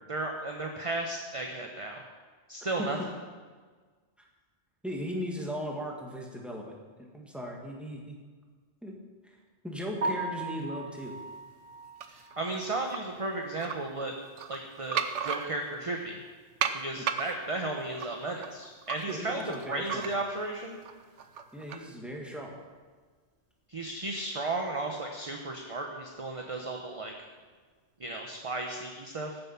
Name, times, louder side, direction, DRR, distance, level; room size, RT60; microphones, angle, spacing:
voice 1, 0.1-2.0 2.5-3.0 12.1-14.1 14.5-16.2 16.7-19.4 19.7-20.8 23.7-27.1 28.0-29.4, right 2 dB, 30° right, 2 dB, 0.9 m, -34 dB
voice 2, 4.8-6.7 7.1-8.2 8.8-8.9 9.2-9.4 9.6-11.2 17.0-17.1 19.1-20.1 21.5-22.5, equal, ahead, -1 dB, 2.0 m, -37 dB
Piano, 10.0-14.0 14.3-14.4 14.9-15.0 15.4-15.5 18.6-18.7 27.2-27.4, right 2 dB, 50° right, 2.5 m, -39 dB
sound 1, 12.0-13.0 13.6-13.8 14.3-15.8 16.6-20.5 20.8-21.9, right 7 dB, 85° right, 1.1 m, -35 dB
14.5 x 7.5 x 5.9 m, 1.5 s
omnidirectional pair, 1.2 m